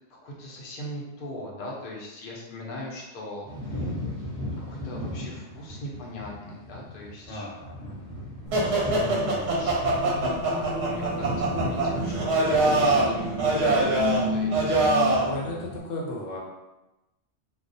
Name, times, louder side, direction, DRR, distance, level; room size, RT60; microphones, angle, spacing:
voice 1, 0.1-3.9 4.6-7.5 8.8-12.1 12.5-15.3, left 2 dB, 55° left, -3 dB, 0.6 m, -39 dB
sound 1, 3.4-15.8, left 1 dB, 5° left, 0.5 m, -37 dB
voice 2, 7.3-8.1 15.2-16.4, left 1 dB, 80° left, -2 dB, 0.9 m, -35 dB
sound 2, 8.5-15.3, right 2 dB, 65° right, 0.8 m, -24 dB
2.3 x 2.0 x 2.6 m, 1.0 s
omnidirectional pair, 1.3 m